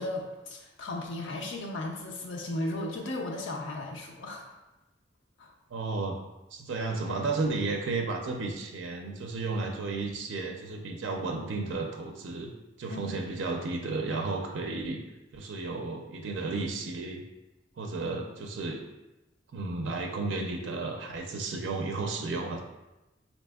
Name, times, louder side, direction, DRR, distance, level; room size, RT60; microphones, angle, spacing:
voice 1, 0.0-4.6 5.4-5.5 12.9-13.2, left 1 dB, 90° left, 1 dB, 0.4 m, -35 dB
voice 2, 5.7-6.2 6.5-12.5 12.8-15.0 15.3-17.2 17.8-18.8 19.5-22.6, right 3 dB, 90° right, 2 dB, 0.4 m, -33 dB
4.1 x 2.9 x 2.2 m, 1.0 s
head